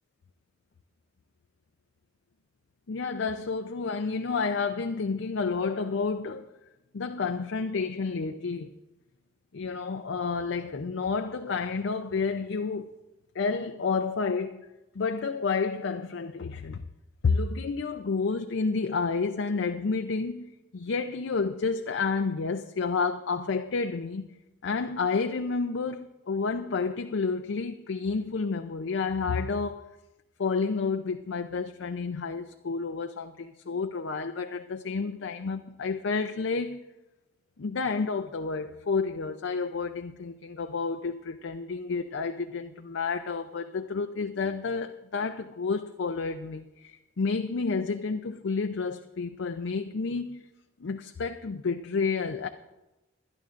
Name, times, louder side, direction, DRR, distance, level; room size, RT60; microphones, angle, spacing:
voice 1, 2.9-6.5 6.9-8.7 9.5-12.9 13.3-14.7 14.9-16.8 17.2-24.3 24.6-29.8 30.4-36.8 37.6-50.4 50.8-52.5, left 4 dB, 70° left, 0.5 m, -30 dB
20.5 x 12.0 x 2.5 m
head